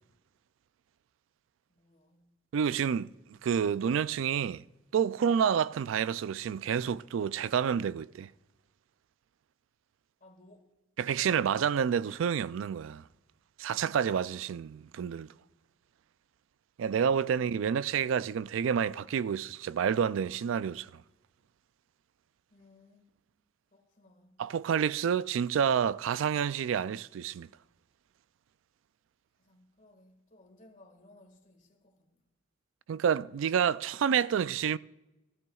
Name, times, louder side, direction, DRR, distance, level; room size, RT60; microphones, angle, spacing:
voice 1, 1.7-2.4 10.2-10.7 11.0-11.3 16.9-17.8 22.5-23.1 23.7-24.4 29.4-32.2, left 1 dB, 40° left, 1.8 m, -59 dB
voice 2, 2.5-4.6 4.9-8.3 11.0-13.0 13.6-15.3 16.8-20.9 24.4-27.5 32.9-34.8, right 7 dB, 70° right, 0.3 m, -29 dB
16.5 x 15.0 x 2.4 m
head